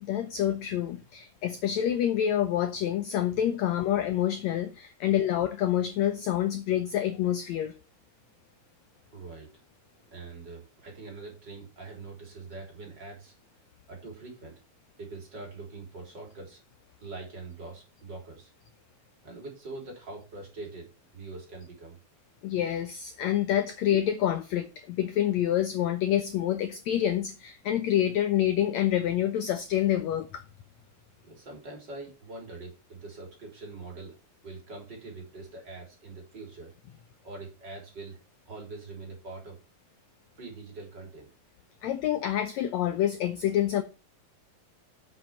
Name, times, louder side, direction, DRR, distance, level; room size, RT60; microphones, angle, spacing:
voice 1, 0.0-7.7 22.4-30.4 41.8-43.8, left 11 dB, 80° left, 1.6 m, -27 dB
voice 2, 9.1-9.6 9.9-13.3 13.9-14.5 15.0-16.6 17.0-18.5 19.2-22.0 31.2-34.2 34.4-36.7 37.2-38.2 38.5-39.6 40.4-41.3, right 3 dB, 30° right, 4.0 m, -43 dB
7.9 x 7.7 x 5.8 m
omnidirectional pair, 4.1 m